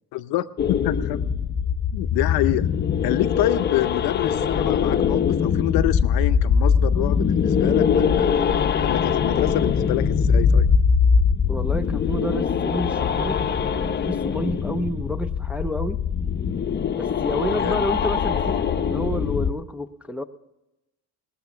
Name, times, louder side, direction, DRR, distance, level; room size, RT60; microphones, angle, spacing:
voice 1, 0.1-1.2 1.9-8.4 8.8-10.7 17.5-17.9, left 16 dB, 75° left, 12 dB, 0.7 m, -27 dB
sound 1, 0.6-19.5, left 6 dB, 30° left, 0.7 m, -22 dB
voice 2, 11.5-16.0 16.9-20.2, equal, 5° right, 5 dB, 0.5 m, -30 dB
20.5 x 7.1 x 7.0 m, 0.97 s
cardioid pair, 120°, 37 cm